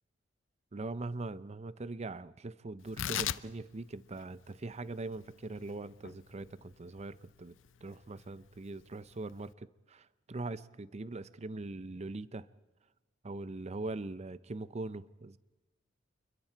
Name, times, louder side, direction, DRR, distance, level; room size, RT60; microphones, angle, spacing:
voice 1, 0.7-7.6 7.8-12.5 13.2-15.4, right 2 dB, 35° right, 0.6 m, -41 dB
Tearing, 2.8-9.5, left 10 dB, 75° left, 0.6 m, -42 dB
28.5 x 22.0 x 4.5 m
head